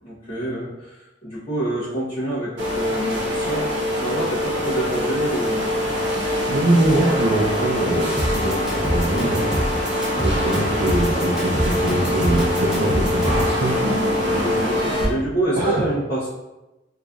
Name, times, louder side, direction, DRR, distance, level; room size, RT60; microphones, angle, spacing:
voice 1, 0.0-1.0 1.2-3.7 4.0-5.7 6.1-6.2 14.3-16.3, right 1 dB, 30° left, -12 dB, 1.0 m, -27 dB
sound 1, 2.6-15.0, equal, 80° right, 1.2 m, -23 dB
voice 2, 6.5-9.5 10.2-13.9 15.6-15.8, right 1 dB, 55° right, -6 dB, 0.5 m, -23 dB
sound 2, 8.2-13.5, equal, 5° right, 0.8 m, -25 dB
3.8 x 3.0 x 2.4 m, 1.0 s
head